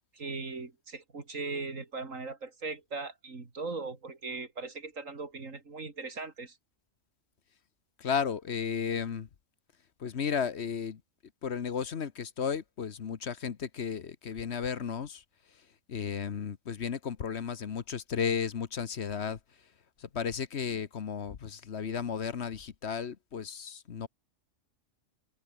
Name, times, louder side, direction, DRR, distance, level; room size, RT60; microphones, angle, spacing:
voice 1, 0.1-6.6, right 3 dB, 80° right, 3.2 m, -39 dB
voice 2, 8.0-9.3 10.0-11.0 11.4-19.7 20.0-24.1, left 7 dB, 55° left, 1.3 m, -34 dB
open air
omnidirectional pair, 1.3 m